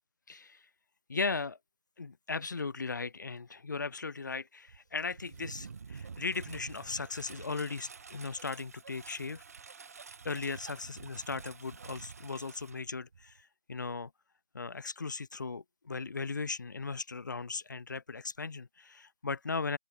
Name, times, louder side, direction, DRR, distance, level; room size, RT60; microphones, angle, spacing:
voice 1, 0.3-0.6 1.1-1.6 2.0-9.4 10.2-13.4 13.7-14.1 14.5-19.8, left 4 dB, 50° left, 2.7 m, -37 dB
Engine, 4.7-13.4, right 5 dB, 40° right, 2.2 m, -49 dB
open air
figure-of-eight pair, 165°, 12 cm